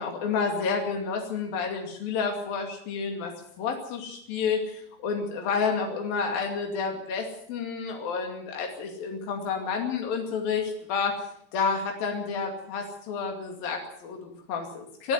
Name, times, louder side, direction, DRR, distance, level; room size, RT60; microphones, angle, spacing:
voice 1, 0.0-3.3 3.6-11.2 11.5-15.1, left 5 dB, 80° left, 2 dB, 4.3 m, -30 dB
23.0 x 12.5 x 9.3 m, 0.69 s
omnidirectional pair, 4.1 m